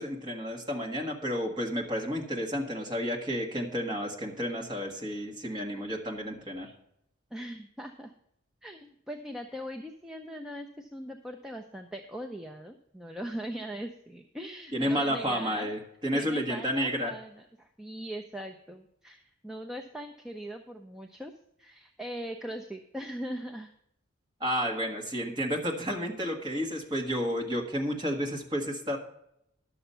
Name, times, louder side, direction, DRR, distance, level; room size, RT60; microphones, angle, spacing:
voice 1, 0.0-6.7 14.7-17.1 24.4-29.0, equal, 20° right, 0 dB, 1.6 m, -31 dB
voice 2, 7.3-8.1 8.6-15.7 16.1-21.3 21.6-23.7, equal, 5° right, 3 dB, 0.5 m, -40 dB
11.5 x 7.0 x 5.5 m, 0.78 s
head